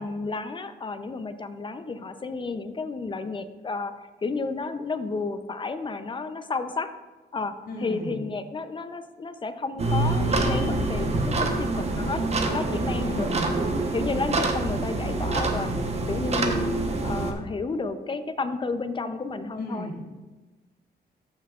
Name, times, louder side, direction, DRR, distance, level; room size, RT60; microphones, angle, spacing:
voice 1, 0.0-3.9 4.2-6.9 7.3-7.5 7.8-12.2 12.5-13.4 13.9-15.7 16.1-16.7 17.0-19.9, left 3 dB, 30° left, 10 dB, 0.5 m, -31 dB
voice 2, 7.7-8.2 13.0-13.5 19.6-20.0, left 1 dB, 55° left, -2 dB, 2.8 m, -34 dB
sound 1, 9.8-17.3, right 2 dB, 35° right, 0.9 m, -26 dB
13.5 x 5.7 x 2.4 m, 1.2 s
wide cardioid pair, 130°, 18 cm